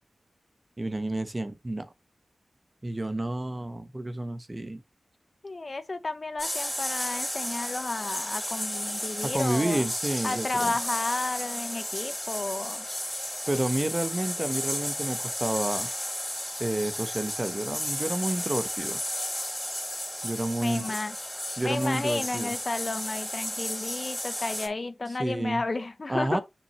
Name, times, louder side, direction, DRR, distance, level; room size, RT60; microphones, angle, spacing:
voice 1, 0.8-1.9 2.8-4.8 9.2-10.8 13.5-15.9 16.6-19.0 20.2-20.9 21.6-22.5 25.2-25.6 26.1-26.4, right 1 dB, 30° right, 1.2 m, -30 dB
voice 2, 5.4-9.9 10.2-12.9 20.6-21.2 21.6-26.4, left 3 dB, 50° left, 0.9 m, -32 dB
sound 1, 6.4-24.7, left 1 dB, 10° left, 3.8 m, -33 dB
6.6 x 6.1 x 3.1 m
cardioid pair, 40°, 0 cm